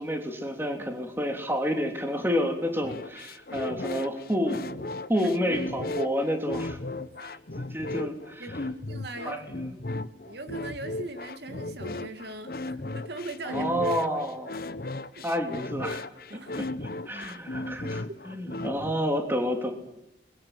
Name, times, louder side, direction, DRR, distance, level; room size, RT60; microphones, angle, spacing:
voice 1, 0.0-4.6 5.1-6.8 7.2-8.4 9.2-9.6 13.4-14.5 15.2-16.0 16.5-19.7, equal, 10° right, 4 dB, 3.1 m, -29 dB
sound 1, 2.8-18.9, left 2 dB, 55° left, 1.0 m, -35 dB
voice 2, 8.4-9.4 10.2-13.7 15.2-15.3 16.3-16.7, right 2 dB, 65° right, 7 dB, 2.4 m, -40 dB
30.0 x 22.0 x 7.6 m, 0.84 s
head